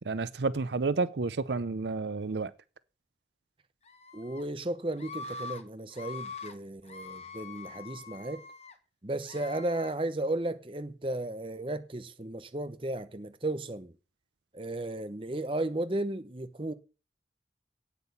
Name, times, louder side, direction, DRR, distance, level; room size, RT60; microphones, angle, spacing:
voice 1, 0.1-2.5, right 3 dB, 80° right, 0.6 m, -30 dB
Screaming, 3.8-4.4 5.0-5.6 5.9-6.5 6.9-8.7 9.2-9.9, left 4 dB, 35° left, 1.3 m, -44 dB
voice 2, 4.1-8.4 9.0-13.9 14.5-16.7, right 1 dB, 30° right, 0.9 m, -34 dB
8.9 x 8.2 x 7.0 m
head